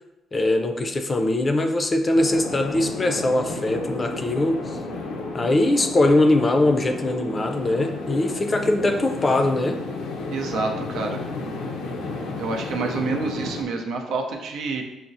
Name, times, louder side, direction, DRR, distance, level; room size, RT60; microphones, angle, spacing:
voice 1, 0.3-4.8 5.3-9.8, left 1 dB, 30° left, 6 dB, 0.4 m, -21 dB
sound 1, 2.1-13.6, left 3 dB, 90° left, 0.5 m, -32 dB
voice 2, 10.3-11.2 12.4-14.8, right 4 dB, 80° right, 3 dB, 0.5 m, -28 dB
5.8 x 2.0 x 2.6 m, 0.96 s
cardioid pair, 90°, 0 cm